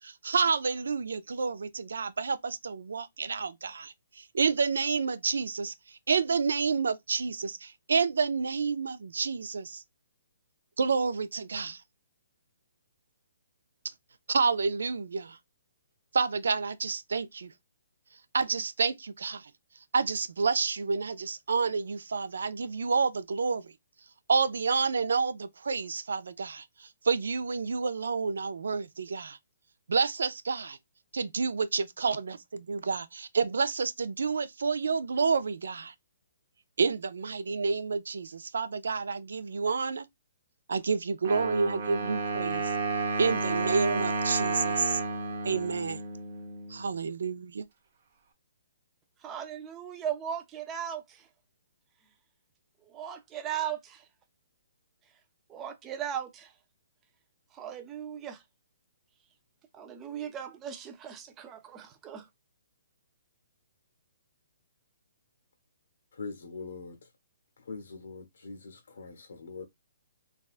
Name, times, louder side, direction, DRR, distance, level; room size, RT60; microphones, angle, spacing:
voice 1, 0.0-9.8 10.8-11.8 14.3-15.4 16.1-17.5 18.3-19.5 19.9-23.7 24.3-29.4 29.9-30.8 31.1-35.9 36.8-40.1 40.7-42.7 43.2-45.0 45.4-46.0 46.7-47.6, right 5 dB, 85° right, 0.4 m, -29 dB
Wind instrument woodwind instrument, 41.2-46.9, right 3 dB, 45° right, 0.7 m, -31 dB
voice 2, 49.2-51.3 52.9-54.0 55.5-56.5 57.5-58.4 59.7-62.3, right 9 dB, 10° right, 0.3 m, -37 dB
voice 3, 66.1-67.0 67.6-69.6, left 4 dB, 65° left, 0.7 m, -42 dB
3.4 x 2.2 x 2.4 m
hypercardioid pair, 175°, 0 cm